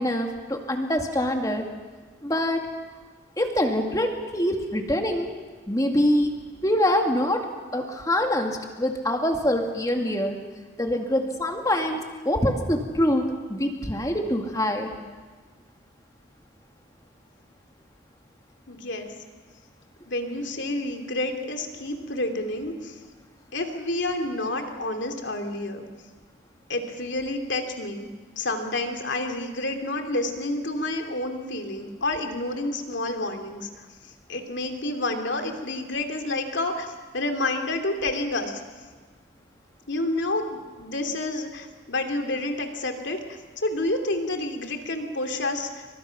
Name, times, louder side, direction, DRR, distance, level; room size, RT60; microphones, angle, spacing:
voice 1, 0.0-1.6 2.2-2.6 3.4-5.3 5.7-6.3 6.6-7.4 7.7-10.4 10.8-14.9, left 1 dB, 15° left, 3 dB, 2.3 m, -24 dB
voice 2, 18.7-19.1 20.1-22.9 23.5-25.9 26.7-28.1 28.4-33.7 34.3-38.6 39.9-43.2 43.6-45.9, left 2 dB, 65° left, 4 dB, 2.8 m, -29 dB
29.0 x 24.5 x 5.9 m, 1.4 s
head